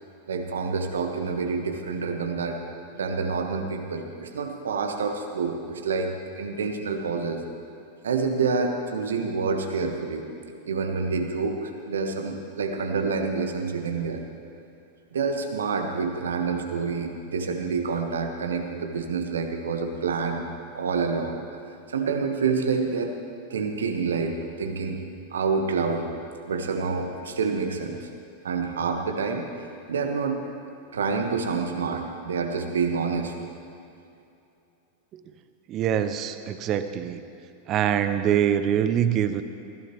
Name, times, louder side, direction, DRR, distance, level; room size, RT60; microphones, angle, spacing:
voice 1, 0.3-2.6 2.9-7.4 8.0-10.2 10.7-14.2 15.1-20.4 20.7-21.6 21.9-23.1 23.5-25.0 25.3-26.1 26.5-28.1 28.4-29.5 29.9-30.4 30.9-33.3, right 5 dB, 65° right, 5 dB, 1.4 m, -27 dB
voice 2, 35.7-37.2 37.7-39.4, right 9 dB, 35° right, 11 dB, 0.8 m, -24 dB
20.5 x 15.5 x 3.1 m, 2.7 s
figure-of-eight pair, 90°, 0 cm